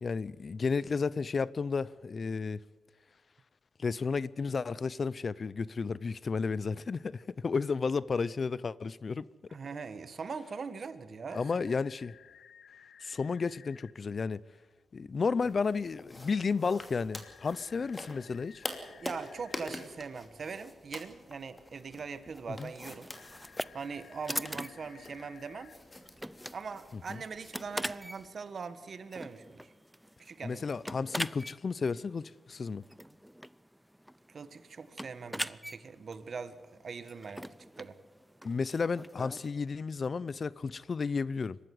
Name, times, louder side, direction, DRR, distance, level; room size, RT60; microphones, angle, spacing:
voice 1, 0.0-2.6 3.8-9.2 11.3-12.2 13.0-14.4 14.9-18.6 22.6-22.7 26.9-27.2 30.4-32.8 38.4-41.6, left 5 dB, 45° left, 0.5 m, -32 dB
voice 2, 9.5-11.4 19.0-23.1 23.7-25.7 26.5-29.7 30.2-30.7 34.3-37.5 37.8-38.0, right 5 dB, 55° right, 1.5 m, -41 dB
sound 1, 11.3-13.9 17.2-19.8 23.1-25.7, left 9 dB, 85° left, 0.7 m, -57 dB
sound 2, 15.4-28.3, left 2 dB, 20° left, 2.7 m, -47 dB
sound 3, 23.0-39.5, equal, 5° right, 0.5 m, -43 dB
23.0 x 13.0 x 9.5 m
cardioid pair, 90°, 0 cm